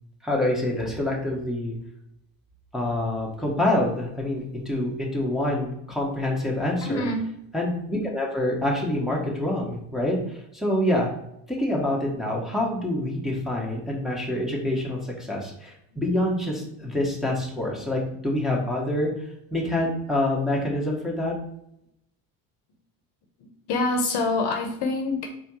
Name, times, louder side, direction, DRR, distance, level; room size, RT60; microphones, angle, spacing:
voice 1, 0.2-1.8 2.7-7.1 7.5-11.1 11.5-19.1 19.5-21.4, left 1 dB, ahead, -4 dB, 1.6 m, -26 dB
voice 2, 6.8-7.3 15.9-16.0 23.4-25.3, left 2 dB, 55° left, 3 dB, 1.0 m, -26 dB
4.1 x 3.8 x 3.1 m, 0.78 s
hypercardioid pair, 70°, 48 cm